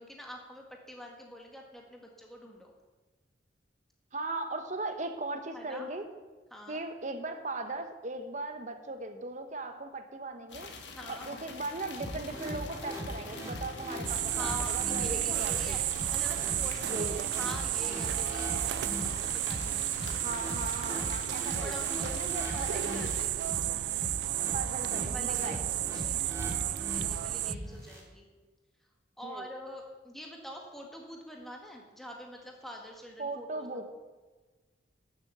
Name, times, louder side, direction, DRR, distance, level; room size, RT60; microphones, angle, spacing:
voice 1, 0.0-2.7 5.5-5.9 6.5-6.8 10.9-11.3 14.3-15.8 16.1-20.2 20.9-21.1 21.5-22.1 22.5-24.2 24.8-28.3 29.2-33.9, equal, ahead, 0 dB, 1.6 m, -46 dB
voice 2, 4.1-6.1 6.7-10.7 11.1-15.8 16.9-17.3 20.2-22.9 24.5-25.6 29.2-29.5 33.2-33.8, right 2 dB, 40° right, 7 dB, 1.3 m, -38 dB
sound 1, 10.5-23.3, left 4 dB, 70° left, 1.7 m, -45 dB
sound 2, 12.0-28.0, equal, 15° right, 3.1 m, -40 dB
sound 3, 14.1-27.6, right 14 dB, 65° right, 0.3 m, -32 dB
12.5 x 7.6 x 8.0 m, 1.3 s
head